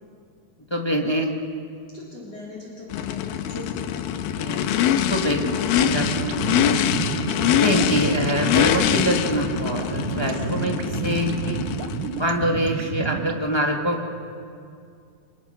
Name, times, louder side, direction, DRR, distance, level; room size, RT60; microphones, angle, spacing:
voice 1, 0.7-1.3 4.3-6.6 7.6-11.6 12.2-14.1, equal, 25° left, 0 dB, 0.6 m, -25 dB
voice 2, 1.9-3.9 10.2-10.6, left 3 dB, 45° left, -4 dB, 4.8 m, -40 dB
Race car auto racing / Idling / Accelerating revving vroom, 2.9-12.3, left 9 dB, 90° left, 2.7 m, -24 dB
sound 1, 5.8-13.4, right 9 dB, 80° right, 2.7 m, -31 dB
28.5 x 27.5 x 5.8 m, 2.3 s
omnidirectional pair, 4.1 m